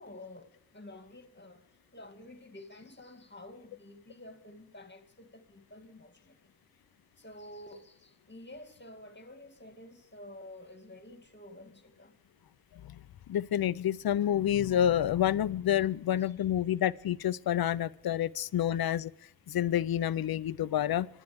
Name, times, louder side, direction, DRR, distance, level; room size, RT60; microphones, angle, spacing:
voice 1, 0.0-1.6 1.9-6.5 7.2-12.1 16.2-16.3, left 1 dB, 30° left, 2.1 m, -50 dB
voice 2, 13.3-19.1 19.5-21.1, left 11 dB, 85° left, 0.5 m, -28 dB
26.5 x 12.0 x 3.5 m
cardioid pair, 50°, 35 cm